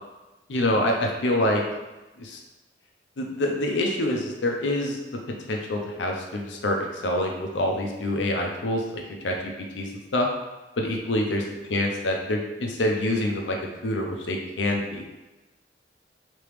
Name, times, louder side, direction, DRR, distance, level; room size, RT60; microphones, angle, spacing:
voice 1, 0.5-1.6 2.2-2.4 3.2-5.0 5.5-10.3 10.8-11.4 11.7-13.6 13.8-15.0, left 1 dB, 85° left, 2 dB, 0.6 m, -26 dB
3.2 x 3.0 x 3.3 m, 1.1 s
head